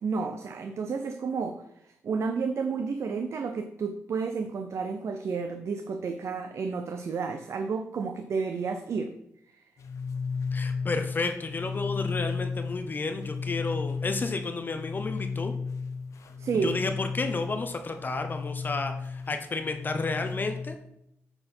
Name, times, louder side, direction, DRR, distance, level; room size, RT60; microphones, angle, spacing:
voice 1, 0.0-9.1 16.4-16.8, right 5 dB, 60° right, 6 dB, 0.6 m, -31 dB
sound 1, 9.8-20.8, left 5 dB, 70° left, 0.7 m, -34 dB
voice 2, 10.5-15.5 16.6-20.7, left 3 dB, 35° left, 6 dB, 0.7 m, -32 dB
8.8 x 4.4 x 4.4 m, 0.78 s
cardioid pair, 90°, 5 cm